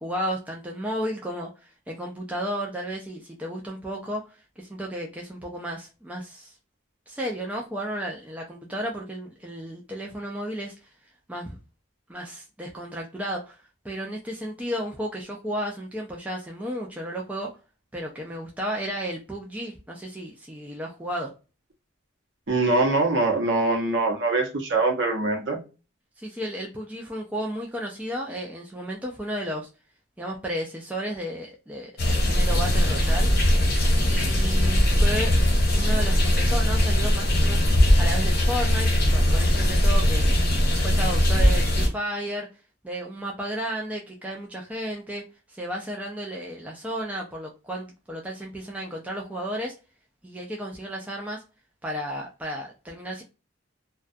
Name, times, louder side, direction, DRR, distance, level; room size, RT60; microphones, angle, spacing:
voice 1, 0.0-6.5 7.1-10.7 11.3-11.6 12.1-13.6 13.8-17.5 17.9-21.3 26.2-29.7 30.2-33.3 34.1-35.3 35.7-37.6 38.0-40.3 40.8-42.5 42.8-45.2 45.5-49.7 50.2-51.4 51.8-53.2, equal, 5° right, 0.3 m, -33 dB
voice 2, 22.5-25.6, right 2 dB, 60° right, 0.7 m, -23 dB
sound 1, 32.0-41.9, left 1 dB, 50° left, 0.9 m, -20 dB
2.2 x 2.2 x 2.5 m
head